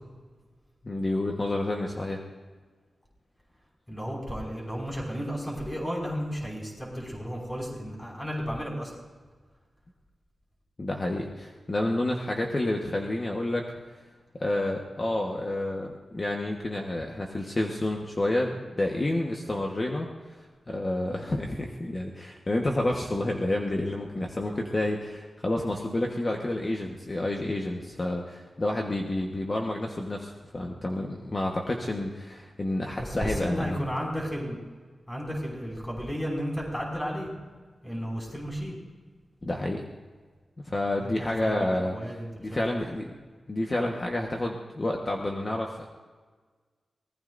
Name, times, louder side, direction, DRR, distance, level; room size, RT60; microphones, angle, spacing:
voice 1, 0.8-2.2 10.8-13.7 14.4-20.1 20.7-33.8 39.4-39.8 40.6-43.1 43.5-45.9, left 1 dB, 30° left, 0 dB, 1.3 m, -29 dB
voice 2, 3.9-8.9 33.0-34.6 35.1-37.3 37.8-38.8 41.0-42.8, equal, 15° left, -3 dB, 5.7 m, -33 dB
24.5 x 19.0 x 2.6 m, 1.4 s
wide cardioid pair, 140°, 0 cm